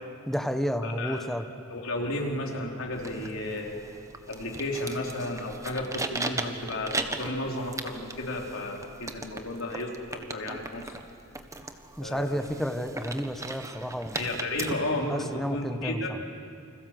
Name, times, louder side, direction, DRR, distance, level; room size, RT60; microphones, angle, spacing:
voice 1, 0.3-1.5 12.0-14.2 15.1-16.0, equal, ahead, 7 dB, 1.3 m, -31 dB
voice 2, 0.8-1.3 1.7-3.8 4.3-11.0 12.0-12.5 14.1-16.2, left 1 dB, 75° left, 0 dB, 4.3 m, -33 dB
sound 1, 2.9-14.7, right 2 dB, 15° right, 1.4 m, -38 dB
29.0 x 26.0 x 7.9 m, 2.5 s
head